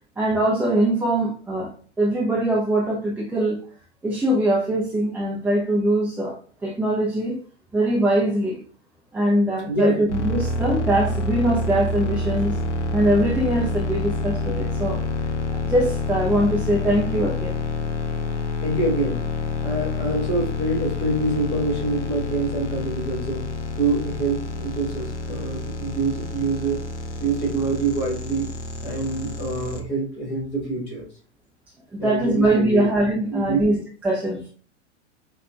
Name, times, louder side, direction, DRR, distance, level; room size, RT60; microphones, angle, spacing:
voice 1, 0.2-1.7 2.0-3.6 4.0-6.4 6.6-7.4 7.7-8.6 9.1-12.6 12.9-15.0 15.5-17.6 31.9-34.4, right 1 dB, 5° right, 0.4 m, -22 dB
voice 2, 9.7-10.0 18.6-19.2 19.6-23.5 23.8-26.8 27.2-28.5 28.8-31.1 32.0-32.9 33.3-33.8, right 3 dB, 30° left, 1.5 m, -26 dB
sound 1, 10.1-29.8, left 2 dB, 80° left, 0.7 m, -28 dB
5.5 x 2.3 x 2.3 m
figure-of-eight pair, 95°, 35 cm